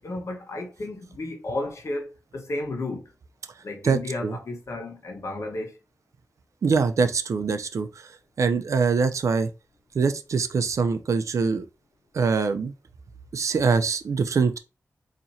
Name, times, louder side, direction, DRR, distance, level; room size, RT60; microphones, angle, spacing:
voice 1, 0.0-3.0 3.6-5.7, left 2 dB, 65° left, 1.2 m, -33 dB
voice 2, 3.8-4.4 6.6-8.1 8.4-9.5 9.9-11.7 12.1-12.7 13.3-14.6, right 5 dB, 75° right, 0.5 m, -23 dB
4.2 x 2.9 x 2.7 m
cardioid pair, 55°, 5 cm